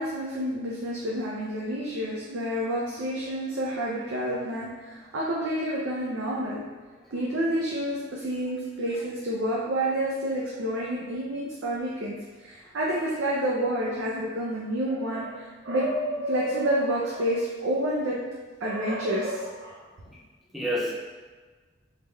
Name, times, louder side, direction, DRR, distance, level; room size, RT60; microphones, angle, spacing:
voice 1, 0.0-6.6 7.1-18.2 18.6-19.8, right 1 dB, 70° right, -5 dB, 0.5 m, -29 dB
voice 2, 20.5-20.9, equal, ahead, -5 dB, 0.5 m, -30 dB
3.3 x 2.2 x 3.1 m, 1.4 s
head